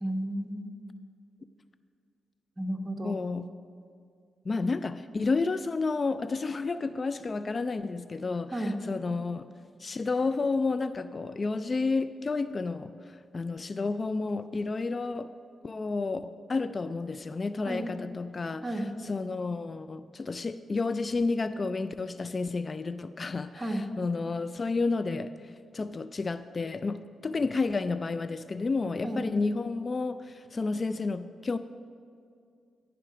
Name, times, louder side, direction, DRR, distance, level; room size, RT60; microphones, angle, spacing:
voice 1, 0.0-0.7 2.6-3.1 8.5-8.8 17.6-17.8 18.6-18.9 23.5-23.8 29.0-29.2, right 1 dB, 30° right, 4 dB, 1.4 m, -32 dB
voice 2, 3.0-3.5 4.5-9.5 9.8-15.3 15.6-18.7 19.0-31.6, left 3 dB, 45° left, 13 dB, 0.3 m, -31 dB
13.0 x 5.8 x 4.9 m, 2.3 s
supercardioid pair, 50°, 0 cm